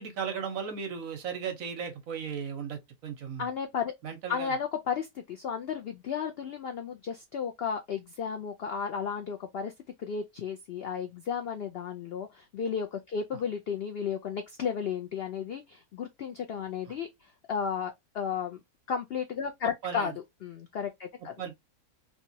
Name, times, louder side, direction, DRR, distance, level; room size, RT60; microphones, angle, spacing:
voice 1, 0.0-3.5 4.0-4.5 16.9-17.0 19.8-20.1 21.4-21.6, right 7 dB, 65° right, 1.3 m, -36 dB
voice 2, 3.4-3.9 4.3-9.7 10.0-18.6 18.9-21.3, left 7 dB, 90° left, 0.5 m, -34 dB
3.3 x 2.9 x 2.7 m
omnidirectional pair, 1.6 m